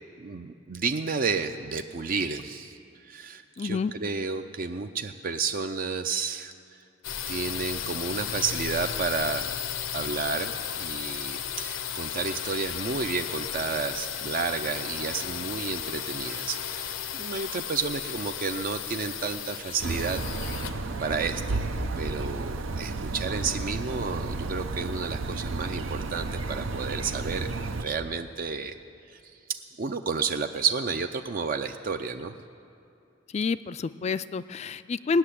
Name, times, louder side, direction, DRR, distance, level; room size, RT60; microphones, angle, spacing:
voice 1, 0.2-2.8 3.0-6.8 7.3-9.6 9.9-20.2 21.0-21.7 22.0-27.5 27.8-28.8 29.1-29.4 29.8-32.4, right 5 dB, 45° right, 7 dB, 0.5 m, -31 dB
voice 2, 3.6-3.9 33.3-35.2, left 4 dB, 35° left, 14 dB, 0.3 m, -28 dB
sound 1, 7.0-22.7, left 9 dB, 80° left, 0.7 m, -34 dB
sound 2, 19.8-27.8, right 3 dB, 85° right, 0.7 m, -32 dB
18.0 x 6.7 x 9.9 m, 2.6 s
head